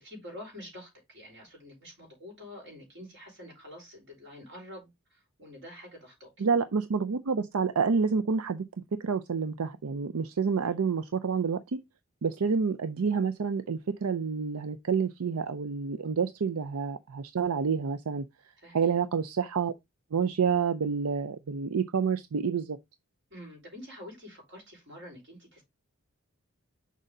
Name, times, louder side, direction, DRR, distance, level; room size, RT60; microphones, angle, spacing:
voice 1, 0.0-6.3 10.6-10.8 18.6-18.9 23.3-25.6, left 1 dB, 55° right, 5.0 m, -47 dB
voice 2, 6.4-8.7 8.9-11.8 12.2-18.2 18.7-19.7 20.1-22.8, right 5 dB, 80° right, 0.5 m, -28 dB
6.6 x 5.0 x 3.8 m
head